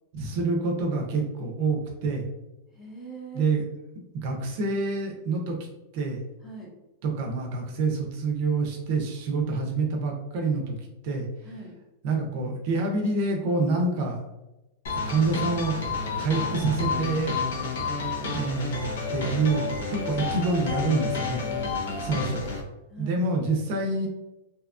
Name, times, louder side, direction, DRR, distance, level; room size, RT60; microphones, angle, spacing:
voice 1, 0.1-2.2 3.3-3.6 4.2-5.6 5.9-6.2 7.0-10.8 11.0-11.3 12.0-14.2 15.0-15.7 16.2-17.4 18.3-19.6 19.9-21.4 22.0-22.4 23.0-24.1, right 3 dB, 40° right, 1 dB, 0.4 m, -27 dB
voice 2, 2.7-3.5 6.4-6.7 11.4-11.7 21.2-22.5 22.9-23.2, right 2 dB, 10° left, -3 dB, 0.5 m, -43 dB
sound 1, 14.9-22.6, left 3 dB, 70° left, 0.6 m, -30 dB
2.7 x 2.3 x 2.4 m, 0.98 s
supercardioid pair, 175°, 0 cm